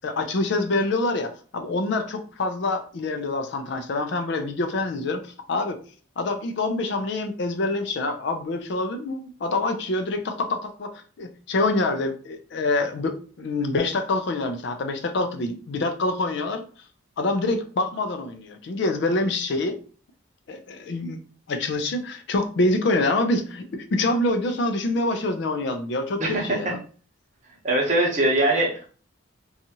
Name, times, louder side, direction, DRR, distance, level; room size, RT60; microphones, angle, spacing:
voice 1, 0.0-5.2 5.5-5.8 6.2-10.9 11.2-16.6 17.2-19.8 20.5-21.2 21.5-26.8, left 2 dB, 55° left, 7 dB, 0.4 m, -26 dB
voice 2, 26.2-26.7 27.6-28.9, right 2 dB, 35° right, -1 dB, 0.8 m, -22 dB
2.6 x 2.4 x 2.8 m, 0.40 s
head